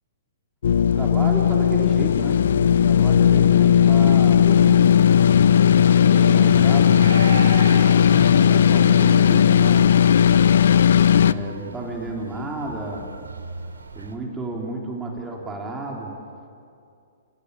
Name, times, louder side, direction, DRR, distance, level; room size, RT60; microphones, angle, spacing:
sound 1, 0.6-11.3, left 9 dB, 70° left, 0.7 m, -16 dB
voice 1, 0.9-2.4 2.8-4.4 5.8-7.1 8.3-10.1 11.2-13.1 13.9-16.1, right 2 dB, 10° right, -1 dB, 4.1 m, -32 dB
sound 2, 3.6-9.5, left 1 dB, 5° left, 4.3 m, -34 dB
sound 3, 5.4-14.1, right 3 dB, 90° right, 2.8 m, -38 dB
28.0 x 19.5 x 8.5 m, 2.4 s
hypercardioid pair, 125°, 0 cm